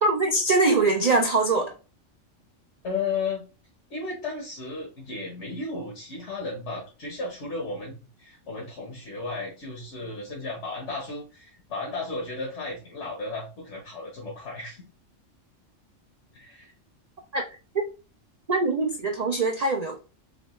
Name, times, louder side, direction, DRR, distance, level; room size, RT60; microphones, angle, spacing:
voice 1, 0.0-1.7 17.3-17.4 18.5-20.0, right 3 dB, 50° right, 0.5 m, -23 dB
voice 2, 2.8-3.4 3.9-14.9 16.3-16.7, left 3 dB, 65° left, 1.5 m, -34 dB
4.0 x 3.1 x 3.1 m
omnidirectional pair, 1.3 m